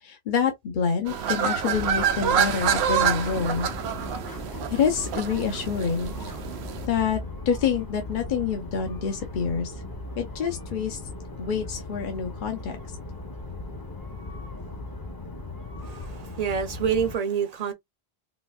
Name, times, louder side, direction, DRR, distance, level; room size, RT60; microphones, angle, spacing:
voice 1, 0.0-3.7 4.7-6.1 6.9-9.8 10.2-11.0 11.4-12.8, left 6 dB, 55° left, 0.8 m, -27 dB
sound 1, 1.1-6.9, right 8 dB, 80° right, 0.8 m, -27 dB
sound 2, 1.7-17.2, left 2 dB, 25° left, 0.7 m, -38 dB
voice 2, 15.8-17.7, right 7 dB, 45° right, 0.7 m, -27 dB
4.0 x 2.5 x 2.3 m
omnidirectional pair, 1.1 m